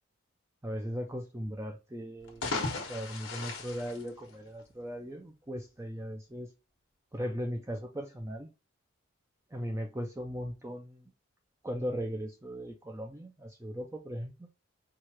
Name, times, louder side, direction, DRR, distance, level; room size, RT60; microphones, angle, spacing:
voice 1, 0.6-6.5 7.1-8.5 9.5-11.1 11.6-14.5, equal, 15° right, 0.4 m, -38 dB
sound 1, 2.2-4.8, left 3 dB, 65° left, 1.2 m, -37 dB
4.7 x 2.4 x 4.2 m
head